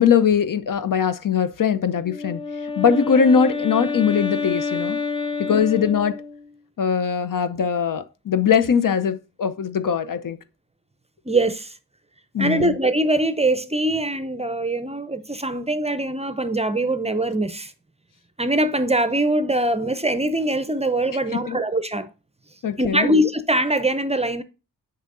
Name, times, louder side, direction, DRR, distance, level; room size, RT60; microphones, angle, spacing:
voice 1, 0.0-5.0 5.4-6.2 6.8-10.4 12.3-12.8 21.3-21.6 22.6-23.2, left 7 dB, 55° left, 0.7 m, -21 dB
Wind instrument woodwind instrument, 2.0-6.5, left 4 dB, 15° left, 1.0 m, -28 dB
voice 2, 11.3-11.7 12.4-17.7 18.4-22.1 22.8-24.4, right 1 dB, 15° right, 0.7 m, -22 dB
7.8 x 5.5 x 2.6 m
cardioid pair, 50°, 39 cm